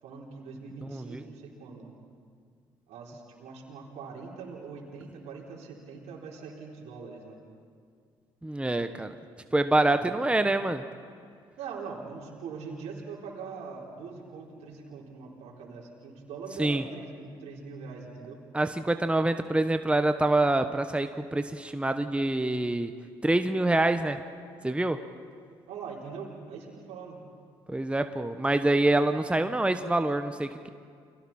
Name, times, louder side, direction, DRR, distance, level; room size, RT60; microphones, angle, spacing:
voice 1, 0.0-1.9 2.9-7.4 8.8-8.9 9.9-10.2 11.6-18.4 25.7-27.2, right 5 dB, 70° right, -3 dB, 4.1 m, -42 dB
voice 2, 0.9-1.2 8.4-9.1 9.5-10.8 16.6-16.8 18.5-22.9 23.2-24.2 24.6-25.0 27.7-30.7, right 2 dB, 10° right, 8 dB, 1.2 m, -26 dB
30.0 x 23.0 x 4.4 m, 2.2 s
hypercardioid pair, 50°, 12 cm